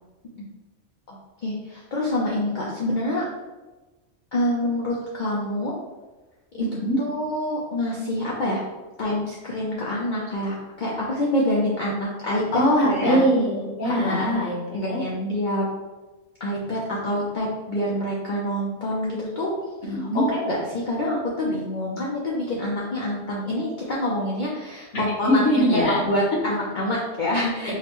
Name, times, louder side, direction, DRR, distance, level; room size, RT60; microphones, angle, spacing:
voice 1, 1.1-3.2 4.3-5.7 6.5-6.7 7.0-8.6 9.0-12.6 12.9-13.2 13.8-14.4 14.7-15.6 16.4-19.5 20.0-27.7, left 1 dB, 50° left, -4 dB, 0.6 m, -26 dB
voice 2, 6.6-7.0 12.5-15.0 19.8-20.3 25.2-26.0, equal, 80° left, -4 dB, 1.5 m, -22 dB
5.9 x 2.1 x 2.9 m, 1.2 s
omnidirectional pair, 1.2 m